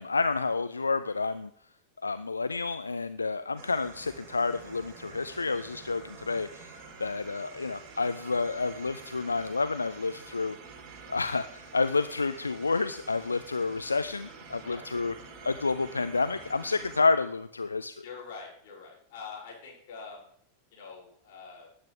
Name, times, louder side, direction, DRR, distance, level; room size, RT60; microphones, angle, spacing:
voice 1, 0.0-1.5 2.0-10.6 11.1-15.1 15.4-18.0, left 4 dB, 80° left, 12 dB, 0.5 m, -29 dB
sound 1, 3.6-17.0, right 5 dB, 35° right, 3.8 m, -48 dB
voice 2, 18.0-20.2 20.7-21.7, left 5 dB, 50° left, -3 dB, 6.7 m, -44 dB
19.5 x 8.9 x 3.5 m, 0.64 s
figure-of-eight pair, 90°, 0 cm